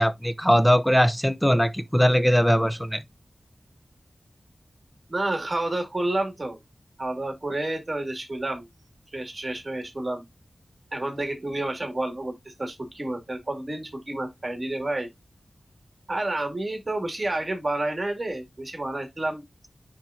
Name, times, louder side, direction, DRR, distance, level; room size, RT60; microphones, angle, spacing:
voice 1, 0.0-3.0, equal, 5° left, 0.7 m, -20 dB
voice 2, 5.1-6.6 7.0-8.7 9.1-10.2 10.9-15.1 16.1-19.4, right 2 dB, 40° right, 2.4 m, -30 dB
10.0 x 3.7 x 2.7 m
wide cardioid pair, 60°, 0 cm